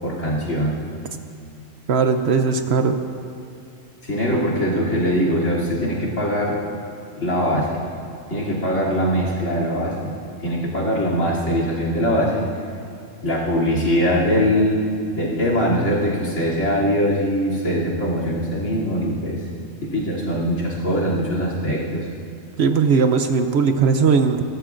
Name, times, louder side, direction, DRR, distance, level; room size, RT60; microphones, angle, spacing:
voice 1, 0.0-0.8 4.0-6.6 7.2-7.8 8.3-10.1 10.4-12.4 13.2-14.9 15.2-19.5 19.8-22.1, equal, 65° left, -4 dB, 3.3 m, -22 dB
voice 2, 1.9-3.0 22.6-24.4, right 5 dB, 60° right, 7 dB, 0.9 m, -18 dB
29.0 x 13.5 x 2.5 m, 2.4 s
omnidirectional pair, 1.3 m